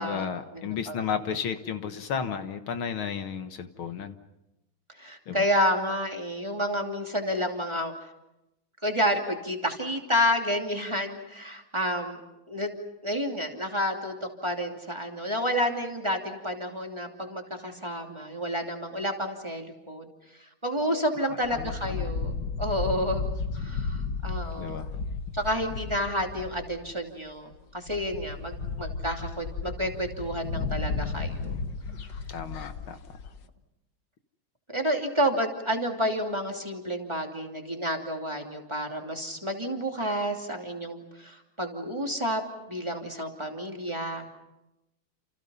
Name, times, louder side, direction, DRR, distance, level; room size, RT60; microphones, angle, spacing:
voice 1, 0.0-4.1 5.3-5.5 21.5-22.1 24.6-24.9 32.3-33.0, left 7 dB, 80° left, 8 dB, 2.2 m, -33 dB
voice 2, 0.6-1.1 5.0-7.9 8.8-12.2 12.5-12.7 13.0-20.1 20.6-22.3 22.6-24.8 25.3-31.6 34.7-42.4 42.7-44.3, equal, 15° right, 2 dB, 2.8 m, -30 dB
sound 1, 21.4-27.0 27.5-27.6 27.9-33.4, left 4 dB, 55° left, 1.6 m, -34 dB
30.0 x 28.5 x 5.6 m, 0.93 s
omnidirectional pair, 2.3 m